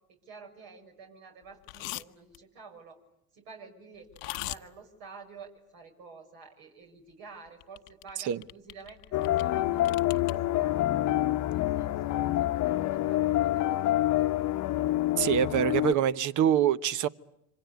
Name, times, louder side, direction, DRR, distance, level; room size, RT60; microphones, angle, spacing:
voice 1, 0.1-3.0 3.3-11.2 11.5-14.4 14.8-15.0, right 4 dB, 75° right, 6.3 m, -50 dB
sound 1, 1.6-2.0 2.3-2.4 4.1-4.6 7.6-8.1 8.4-9.5 9.8-10.3, left 22 dB, 70° left, 1.0 m, -39 dB
sound 2, 9.1-15.9, left 14 dB, 45° left, 1.1 m, -27 dB
voice 2, 15.2-17.1, right 10 dB, 45° right, 1.1 m, -25 dB
26.5 x 26.0 x 8.4 m
supercardioid pair, 95°, 41 cm